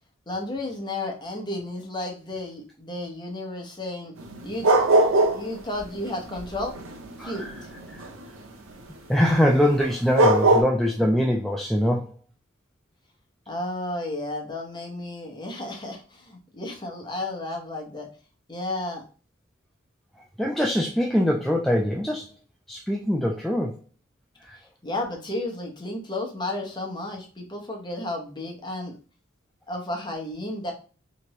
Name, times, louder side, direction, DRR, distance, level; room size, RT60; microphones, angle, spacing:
voice 1, 0.3-4.1 4.4-4.7 5.3-6.7 7.2-7.5 13.5-18.1 18.5-19.0 24.6-29.0 29.7-30.7, left 2 dB, 20° left, 1 dB, 0.9 m, -32 dB
sound 1, 4.2-5.5 5.8-8.2 9.8-9.9 10.1-10.6, right 2 dB, 90° right, 0.8 m, -20 dB
voice 2, 7.2-7.5 7.9-8.1 9.1-12.1 20.4-22.3 22.7-23.8 24.4-24.6, equal, ahead, 0 dB, 0.3 m, -23 dB
3.4 x 3.0 x 3.0 m, 0.37 s
head